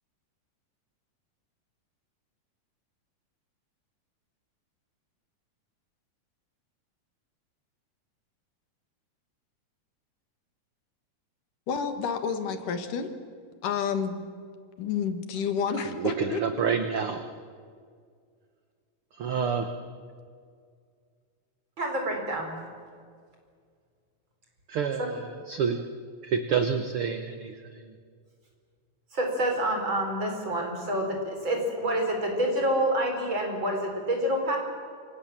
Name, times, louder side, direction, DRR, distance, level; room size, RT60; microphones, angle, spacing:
voice 1, 11.7-13.1 13.6-14.3 14.8-16.4, left 6 dB, 75° left, 8 dB, 3.2 m, -29 dB
voice 2, 15.8-17.2 19.1-19.8 24.7-25.9 26.2-27.9, right 6 dB, 60° right, 8 dB, 1.6 m, -29 dB
voice 3, 21.8-22.5 29.1-34.6, right 1 dB, 35° right, 2 dB, 5.6 m, -27 dB
28.5 x 26.0 x 7.4 m, 2.1 s
omnidirectional pair, 3.8 m